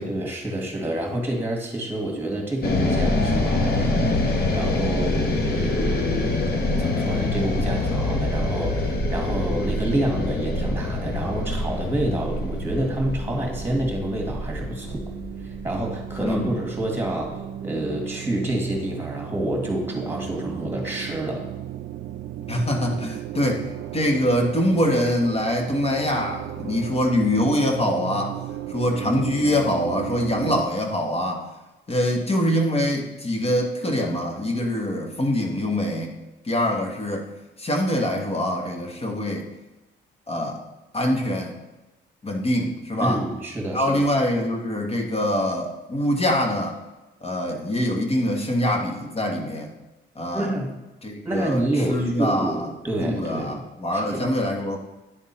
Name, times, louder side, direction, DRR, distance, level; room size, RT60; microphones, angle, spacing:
voice 1, 0.0-6.3 6.8-15.0 15.4-21.5 43.0-44.0 50.3-50.7 51.2-53.6 53.9-54.3, right 1 dB, 10° right, 0 dB, 2.0 m, -28 dB
sound 1, 2.6-16.9, left 2 dB, 50° left, 1.1 m, -25 dB
sound 2, 11.9-30.6, right 11 dB, 80° right, 0.5 m, -35 dB
voice 2, 16.2-16.6 22.5-23.7 23.9-28.4 28.7-31.4 31.9-36.1 36.4-37.3 37.6-39.5 40.3-40.6 40.9-41.6 42.2-43.2 43.7-46.8 47.2-49.7 50.1-50.5 51.0-51.6 51.9-52.7 53.0-54.8, left 1 dB, 30° left, 2 dB, 1.3 m, -24 dB
10.0 x 3.6 x 4.2 m, 1.0 s
cardioid pair, 90°, 20 cm